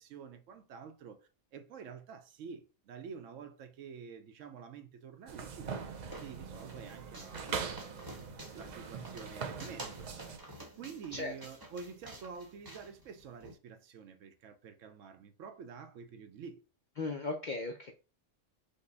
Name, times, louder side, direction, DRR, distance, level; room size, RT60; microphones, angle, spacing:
voice 1, 0.0-5.8 6.2-7.9 8.5-10.1 10.8-16.6, right 6 dB, 75° right, 1.0 m, -48 dB
sound 1, 5.3-10.4, right 6 dB, 60° right, 0.4 m, -42 dB
sound 2, 5.4-13.5, right 1 dB, 20° right, 0.7 m, -50 dB
voice 2, 17.0-17.9, left 3 dB, 60° left, 0.5 m, -36 dB
5.3 x 2.1 x 3.9 m
omnidirectional pair, 1.3 m